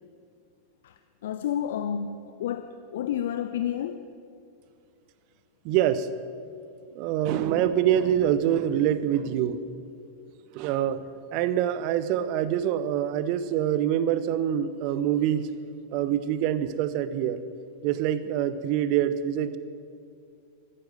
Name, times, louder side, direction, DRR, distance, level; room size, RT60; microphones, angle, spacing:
voice 1, 0.8-4.1, left 9 dB, 55° left, 9 dB, 0.6 m, -31 dB
voice 2, 5.6-6.1 6.9-9.6 10.5-11.0 11.3-15.5 15.9-17.4 17.8-19.6, right 10 dB, 45° right, 14 dB, 0.8 m, -25 dB
14.5 x 9.7 x 7.8 m, 2.4 s
figure-of-eight pair, 90°, 0 cm